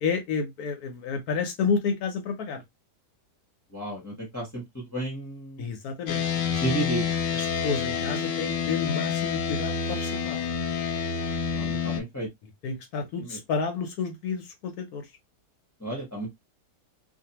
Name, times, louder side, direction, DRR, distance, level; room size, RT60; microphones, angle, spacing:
voice 1, 0.0-2.6 5.6-6.2 6.5-6.6 7.3-10.4 12.6-15.1, left 5 dB, 70° left, 1.0 m, -30 dB
voice 2, 3.7-4.6 4.9-5.7 6.6-7.2 11.5-12.3 13.2-13.4 15.8-16.3, right 2 dB, 15° left, 0.7 m, -32 dB
sound 1, 6.1-12.0, left 6 dB, 90° left, 1.4 m, -28 dB
2.6 x 2.4 x 2.8 m
omnidirectional pair, 1.8 m